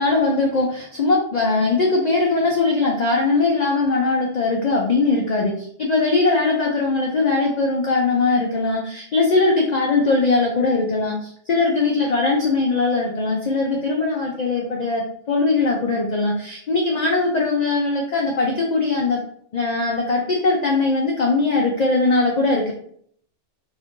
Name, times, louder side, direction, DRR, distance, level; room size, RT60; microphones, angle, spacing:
voice 1, 0.0-19.2 19.5-22.7, left 3 dB, 55° left, -1 dB, 0.4 m, -20 dB
2.6 x 2.5 x 3.6 m, 0.63 s
omnidirectional pair, 1.2 m